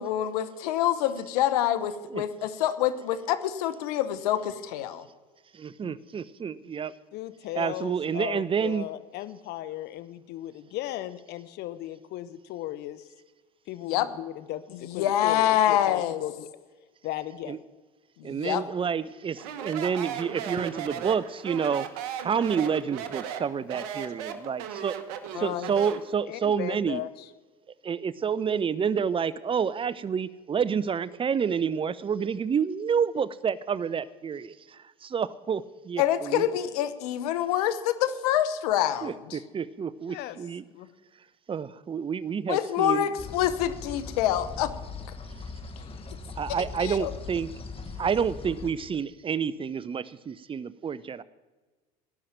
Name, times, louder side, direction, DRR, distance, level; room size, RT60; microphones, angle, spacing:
voice 1, 0.0-5.0 5.8-5.9 13.9-14.1 14.9-16.2 18.2-18.6 25.3-25.7 36.0-39.4 42.5-44.7 46.8-47.1, left 11 dB, 85° left, 11 dB, 1.1 m, -26 dB
voice 2, 5.5-6.9 7.5-8.9 17.5-17.6 18.2-21.9 22.2-25.0 25.3-27.0 27.8-36.5 39.0-40.6 41.5-43.0 46.4-47.5 48.0-51.2, right 7 dB, 30° right, 18 dB, 0.7 m, -29 dB
voice 3, 7.1-13.1 13.7-16.5 17.0-17.6 18.5-18.7 26.3-27.3 40.1-40.4 40.7-40.9, left 14 dB, 60° left, 14 dB, 0.8 m, -37 dB
Speech, 19.4-26.1, right 9 dB, 80° right, 1.2 m, -36 dB
sound 1, 43.2-48.7, left 4 dB, 30° left, 1.6 m, -40 dB
17.5 x 5.8 x 9.0 m, 1.3 s
supercardioid pair, 85°, 19 cm